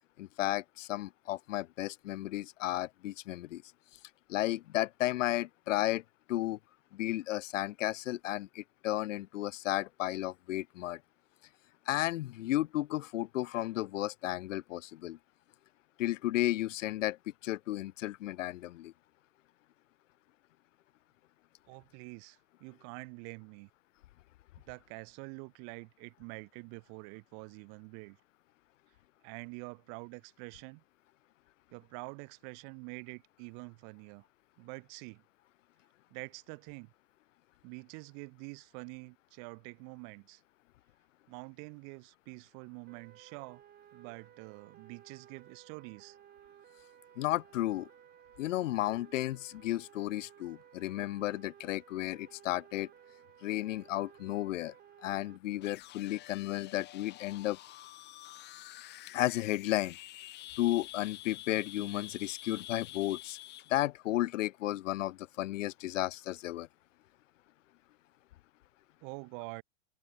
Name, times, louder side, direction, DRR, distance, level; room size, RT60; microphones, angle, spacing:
voice 1, 0.2-3.6 4.3-6.0 6.3-6.6 6.9-11.0 11.9-15.2 16.0-17.2 17.4-18.9 47.2-47.9 48.4-52.9 53.4-54.7 55.0-57.6 59.1-60.0 60.6-63.4 63.7-66.7, left 15 dB, 80° left, 0.8 m, -33 dB
voice 2, 21.7-23.7 24.7-28.2 29.2-30.8 31.7-34.2 34.6-35.2 36.1-36.9 37.6-40.4 41.3-43.6 43.9-46.2 69.0-69.6, right 40 dB or more, 45° right, 3.1 m, -46 dB
sound 1, 42.9-55.4, right 11 dB, 25° right, 5.5 m, -58 dB
sound 2, 55.6-63.9, left 15 dB, 30° left, 1.8 m, -48 dB
supercardioid pair, 145°, 37 cm